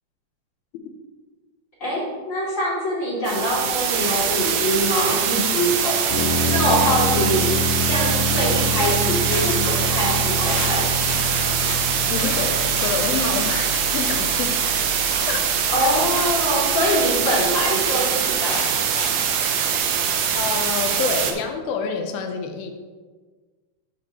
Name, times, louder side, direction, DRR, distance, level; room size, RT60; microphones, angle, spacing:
voice 1, 1.8-6.0 6.5-7.5 7.9-10.8 15.7-19.2, equal, 25° left, -7 dB, 2.5 m, -24 dB
sound 1, 3.2-21.3, right 8 dB, 75° right, 2.1 m, -23 dB
sound 2, 6.1-17.7, left 2 dB, 70° left, 1.0 m, -28 dB
sound 3, 8.6-21.4, right 1 dB, 25° right, 1.7 m, -36 dB
voice 2, 12.1-14.6 15.3-15.4 20.3-22.7, left 5 dB, 90° left, 5 dB, 2.6 m, -27 dB
12.5 x 5.3 x 3.0 m, 1.4 s
omnidirectional pair, 4.2 m